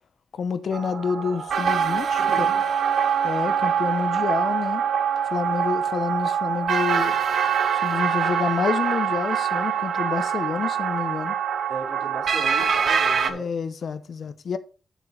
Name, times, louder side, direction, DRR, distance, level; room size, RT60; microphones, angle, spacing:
voice 1, 0.3-2.5 3.2-4.8 5.3-7.2 7.7-11.4 13.3-14.6, left 6 dB, 55° left, 0.8 m, -28 dB
sound 1, 0.7-13.3, right 7 dB, 60° right, 0.9 m, -24 dB
voice 2, 2.1-2.7 11.7-13.5, right 4 dB, 90° right, 3.3 m, -37 dB
9.0 x 6.8 x 4.1 m
wide cardioid pair, 175°, 0 cm